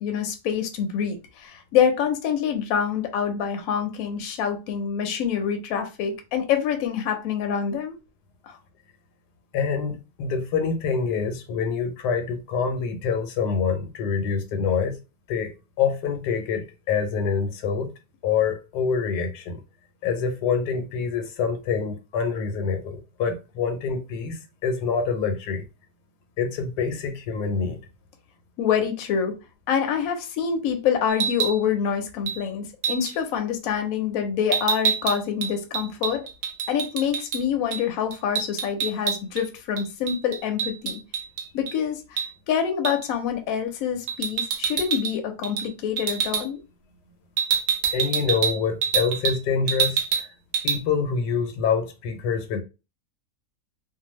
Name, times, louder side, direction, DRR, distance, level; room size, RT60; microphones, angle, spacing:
voice 1, 0.0-8.0 8.4-8.6 28.6-29.3 29.7-36.3 36.7-41.0 41.5-42.2 42.5-46.6, left 8 dB, 70° left, 1.0 m, -26 dB
voice 2, 9.5-15.0 15.3-15.5 15.8-17.9 18.2-19.6 20.0-25.6 26.4-27.8 47.9-50.3 50.6-52.6, left 6 dB, 90° left, 1.2 m, -26 dB
sound 1, 31.1-31.6 32.3-32.4 32.8-33.1 34.5-37.4 37.7-37.8 38.1-39.4 39.8-41.7 42.2-42.3 42.8-43.1 44.1-45.2 45.4-45.7 46.0-46.4 47.4-49.4 49.7-50.3 50.5-50.8, right 7 dB, 65° right, 0.7 m, -26 dB
2.6 x 2.2 x 3.0 m
omnidirectional pair, 1.7 m